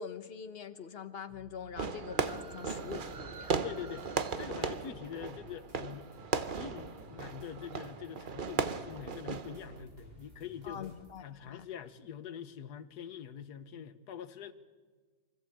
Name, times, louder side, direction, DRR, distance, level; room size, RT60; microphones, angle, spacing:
voice 1, 0.0-3.6 10.6-11.6, left 7 dB, 45° left, 11 dB, 1.0 m, -44 dB
sound 1, 1.3-12.4, right 2 dB, 65° right, 2.5 m, -65 dB
Fireworks, 1.8-9.8, right 5 dB, 40° right, 0.8 m, -37 dB
sound 2, 2.1-11.2, right 1 dB, 90° right, 4.6 m, -56 dB
voice 2, 3.6-6.1 6.5-14.5, left 9 dB, 85° left, 12 dB, 1.5 m, -44 dB
25.0 x 14.5 x 8.5 m, 1.5 s
omnidirectional pair, 1.7 m